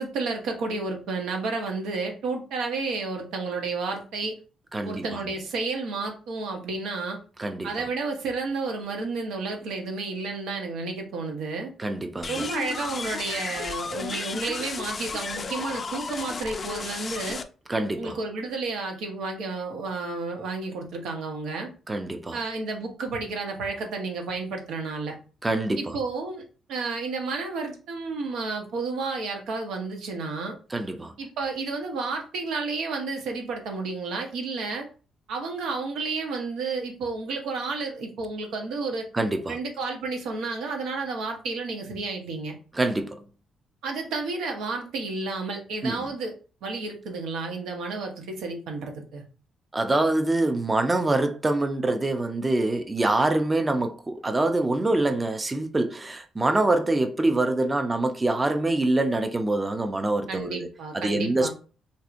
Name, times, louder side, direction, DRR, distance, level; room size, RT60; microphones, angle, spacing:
voice 1, 0.0-4.4 4.8-7.2 7.6-11.7 12.3-17.4 18.0-21.7 22.3-25.2 25.8-26.4 26.7-30.6 31.2-34.9 35.3-39.0 39.5-42.6 43.8-46.3 46.6-49.2 60.3-61.5, right 3 dB, 85° right, 0.9 m, -31 dB
voice 2, 4.7-5.2 7.4-7.7 11.8-12.5 17.7-18.1 21.9-22.4 25.4-26.0 30.7-31.1 39.1-39.6 42.7-43.2 45.8-46.1 49.7-60.7 60.9-61.5, right 2 dB, 20° right, 0.5 m, -25 dB
sound 1, 12.2-17.4, left 4 dB, 40° left, 0.3 m, -33 dB
3.4 x 2.7 x 2.5 m
cardioid pair, 90°, 0 cm